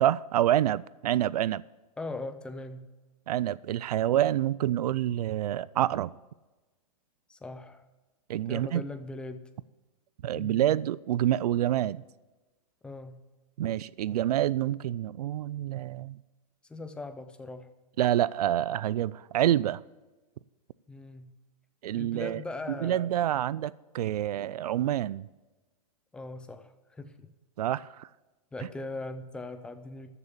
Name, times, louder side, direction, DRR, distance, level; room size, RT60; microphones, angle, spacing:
voice 1, 0.0-1.6 3.3-6.1 8.3-8.8 10.2-12.0 13.6-16.2 18.0-19.8 21.8-22.4 22.8-25.3 27.6-28.1, right 12 dB, 85° right, 0.4 m, -27 dB
voice 2, 2.0-2.9 7.3-7.8 8.5-9.5 10.3-10.8 12.8-13.2 16.7-17.7 20.9-21.3 21.9-23.1 26.1-27.3 28.5-30.2, left 2 dB, 5° left, 0.6 m, -40 dB
14.0 x 6.7 x 7.3 m
supercardioid pair, 160°, 19 cm